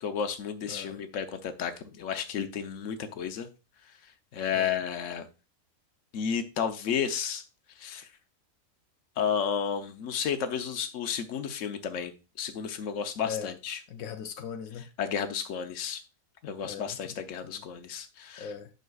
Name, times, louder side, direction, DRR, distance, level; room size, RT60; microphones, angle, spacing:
voice 1, 0.0-3.5 4.3-5.3 6.1-7.4 7.8-8.1 9.2-12.1 12.4-13.8 15.0-16.0 16.4-18.5, left 7 dB, 70° left, 1.2 m, -32 dB
voice 2, 0.7-1.0 4.5-4.8 13.2-13.6 13.9-14.9 16.6-17.7 18.4-18.7, left 7 dB, 85° left, 1.1 m, -40 dB
9.2 x 6.2 x 2.3 m
omnidirectional pair, 1.4 m